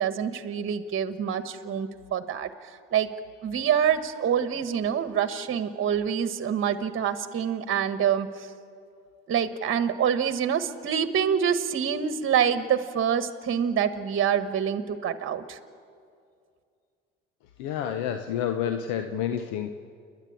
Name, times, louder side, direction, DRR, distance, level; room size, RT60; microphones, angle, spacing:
voice 1, 0.0-3.1 3.4-8.5 9.3-15.6, right 8 dB, 45° right, 12 dB, 1.3 m, -26 dB
voice 2, 17.6-19.7, left 9 dB, 80° left, 8 dB, 0.9 m, -29 dB
29.5 x 10.5 x 8.5 m, 2.3 s
hypercardioid pair, 65°, 29 cm